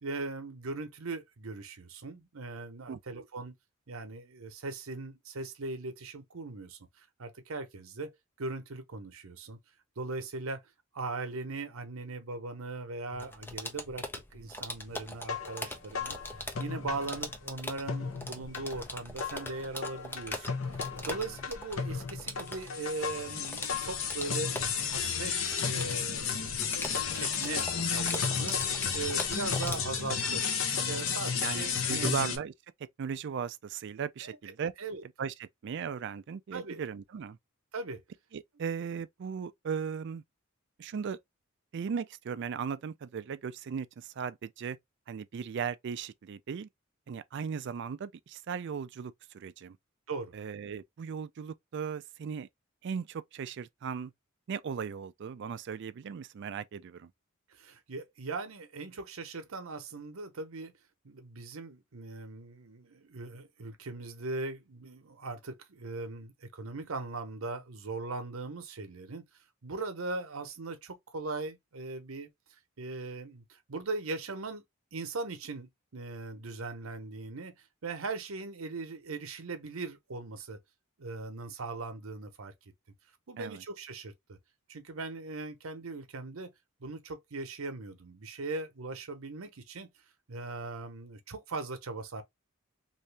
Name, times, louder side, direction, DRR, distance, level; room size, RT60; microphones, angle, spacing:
voice 1, 0.0-3.5 3.9-8.1 8.4-9.6 10.0-10.6 10.9-14.1 14.3-24.5 24.9-28.6 28.9-30.5 30.9-32.1 34.2-35.0 36.5-36.8 37.7-38.0 50.1-50.3 57.5-60.7 61.0-69.2 69.6-72.3 72.8-74.6 74.9-77.5 77.8-80.6 81.0-82.5 83.3-84.4 84.7-86.5 86.8-89.9 90.3-92.2, right 3 dB, 85° right, 0.8 m, -39 dB
voice 2, 2.9-3.3 21.1-21.2 31.4-32.5 33.0-34.7 35.2-37.4 38.3-40.2 40.8-41.2 41.7-44.8 45.1-46.7 47.1-49.8 50.3-52.5 52.8-54.1 54.5-57.1 83.4-83.6, right 6 dB, 55° right, 0.4 m, -37 dB
sound 1, 13.1-29.8, left 1 dB, 10° left, 0.5 m, -42 dB
sound 2, 15.2-17.5 17.9-32.4, left 6 dB, 70° left, 0.7 m, -33 dB
2.8 x 2.7 x 3.3 m
head